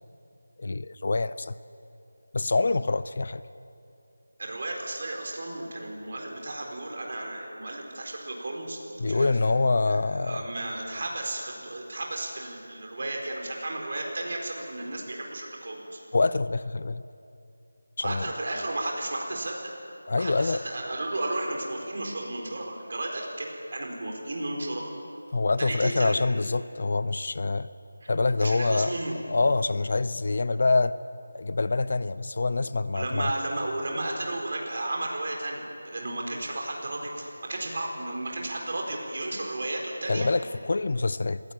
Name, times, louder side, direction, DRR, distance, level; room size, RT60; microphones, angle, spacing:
voice 1, 0.6-1.5 2.3-3.4 9.0-10.5 16.1-17.0 18.0-18.3 20.1-20.6 25.3-27.7 28.1-28.9 29.3-30.9 31.3-33.3 40.1-41.4, left 3 dB, 40° left, 16 dB, 0.4 m, -25 dB
voice 2, 4.4-9.3 9.9-16.0 18.0-19.6 20.2-24.9 25.6-26.2 28.0-28.1 28.4-29.1 32.9-40.3, right 2 dB, 40° right, 1 dB, 4.3 m, -33 dB
20.0 x 17.0 x 8.7 m, 2.7 s
figure-of-eight pair, 175°, 0 cm